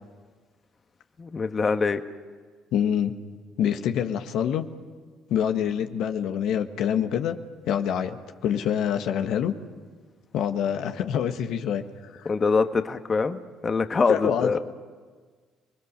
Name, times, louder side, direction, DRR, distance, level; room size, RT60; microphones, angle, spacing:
voice 1, 1.2-2.0 12.2-14.6, left 4 dB, 35° left, 8 dB, 1.5 m, -24 dB
voice 2, 2.7-3.1 3.6-4.6 5.3-7.4 7.7-8.2 8.4-9.5 10.3-12.3 14.1-14.6, left 9 dB, 70° left, 6 dB, 1.5 m, -26 dB
29.5 x 21.0 x 6.8 m, 1.5 s
hypercardioid pair, 60°, 0 cm